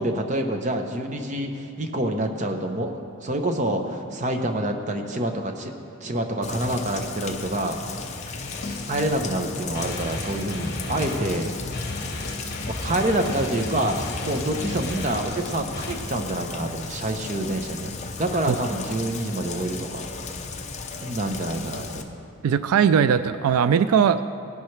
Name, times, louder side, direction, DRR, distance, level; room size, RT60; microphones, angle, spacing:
voice 1, 0.0-5.7 6.0-7.8 8.9-11.5 12.7-20.1 21.0-22.2, right 1 dB, 35° right, 5 dB, 0.8 m, -27 dB
Rain, 6.4-22.0, left 4 dB, 30° left, 0.7 m, -35 dB
sound 1, 7.6-15.9, left 2 dB, 50° left, 1.5 m, -35 dB
voice 2, 22.4-24.4, right 7 dB, 85° right, 13 dB, 0.3 m, -20 dB
17.5 x 10.5 x 3.3 m, 2.5 s
head